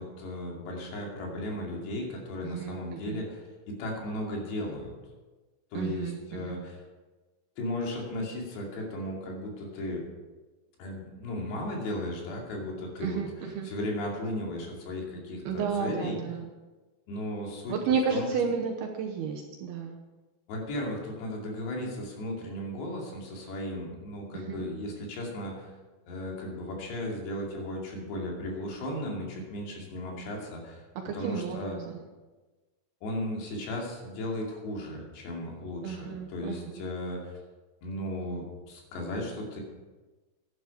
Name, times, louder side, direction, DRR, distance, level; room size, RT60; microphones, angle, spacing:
voice 1, 0.0-4.9 5.7-6.8 7.6-10.0 10.8-13.2 13.6-16.2 17.1-17.8 18.1-18.3 20.5-25.7 26.1-30.8 31.1-31.8 33.0-37.4 37.8-39.6, left 1 dB, 70° left, -1 dB, 4.5 m, -35 dB
voice 2, 2.4-3.2 5.7-6.6 13.0-13.7 15.5-16.5 17.7-20.0 24.3-24.6 31.1-32.0 35.8-36.8, right 6 dB, 75° right, 1 dB, 2.6 m, -32 dB
11.0 x 11.0 x 5.9 m, 1.2 s
omnidirectional pair, 5.4 m